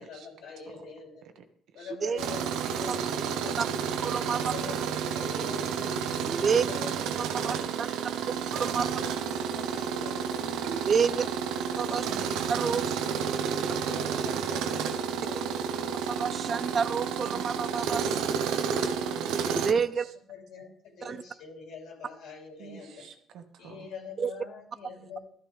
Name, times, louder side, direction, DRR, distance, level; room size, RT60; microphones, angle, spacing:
voice 1, 0.0-1.2 1.7-3.7 4.3-5.9 6.4-6.9 7.3-7.8 8.1-8.5 9.3-10.5 11.0-11.3 11.9-12.3 12.6-13.0 13.7-15.7 16.5-17.0 18.6-19.4 20.3-23.1 23.6-25.2, left 5 dB, 70° left, 0 dB, 3.5 m, -45 dB
Tools, 2.2-19.7, right 7 dB, 80° right, 1.0 m, -31 dB
voice 2, 4.0-4.5 6.3-6.6 7.2-7.9 8.5-8.9 10.7-11.2 11.8-12.1 12.5-12.9 15.3-15.4 16.1-18.4 19.5-20.1 21.0-21.2 24.2-24.3, right 6 dB, 30° right, 14 dB, 0.4 m, -29 dB
voice 3, 5.8-6.7 7.6-8.6 12.1-14.2 17.2-19.6 20.0-20.1 22.6-23.9, right 7 dB, 60° right, 6 dB, 1.4 m, -49 dB
13.5 x 12.5 x 3.5 m, 0.65 s
cardioid pair, 160°, 0 cm